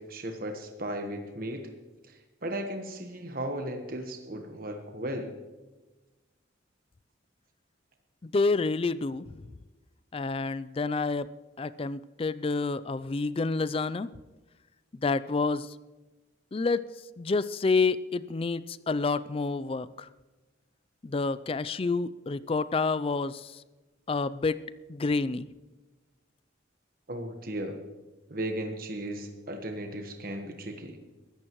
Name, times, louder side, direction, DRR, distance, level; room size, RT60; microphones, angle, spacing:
voice 1, 0.0-1.7 2.1-5.3 27.1-27.7 28.3-31.0, right 1 dB, 50° right, 4 dB, 1.2 m, -36 dB
voice 2, 8.3-9.3 10.1-11.3 11.6-14.1 15.0-15.7 16.5-16.8 17.2-19.9 21.0-23.5 24.1-24.6 24.9-25.5, left 3 dB, 30° left, 17 dB, 0.4 m, -28 dB
22.5 x 14.0 x 3.1 m, 1.2 s
head